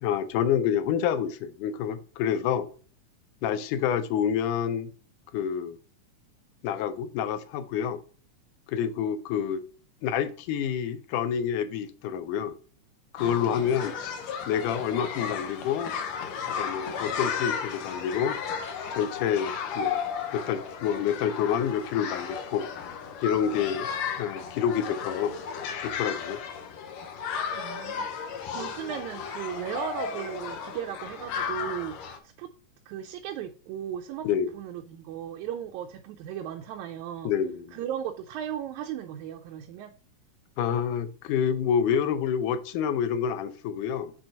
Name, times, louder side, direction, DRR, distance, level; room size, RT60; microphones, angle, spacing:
voice 1, 0.0-2.7 3.4-4.9 5.3-5.8 6.6-8.0 8.7-9.6 10.0-12.6 13.1-13.9 14.5-15.9 16.5-18.4 18.9-20.0 20.3-22.7 23.2-23.9 24.2-25.4 25.8-26.4 34.2-34.5 37.2-37.8 40.6-44.1, left 8 dB, 85° left, 2.2 m, -28 dB
sound 1, 13.2-32.2, left 7 dB, 70° left, 1.9 m, -34 dB
voice 2, 13.2-13.8 27.2-32.0 32.2-32.5 32.9-34.3 34.5-37.3 37.7-39.9, right 10 dB, 80° right, 1.9 m, -36 dB
6.1 x 4.4 x 5.1 m
omnidirectional pair, 3.6 m